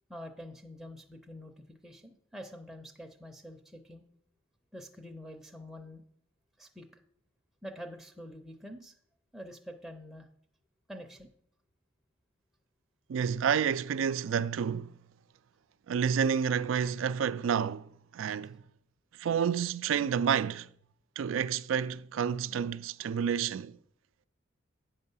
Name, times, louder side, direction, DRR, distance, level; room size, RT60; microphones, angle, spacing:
voice 1, 0.1-4.0 4.7-6.0 6.6-6.9 7.6-8.9 9.3-10.3 10.9-11.3, equal, ahead, 0.5 m, -46 dB
voice 2, 13.1-14.9 15.9-17.9 18.1-18.6 19.2-20.7 21.2-23.8, right 7 dB, 75° right, 0.3 m, -29 dB
8.6 x 5.4 x 5.5 m
head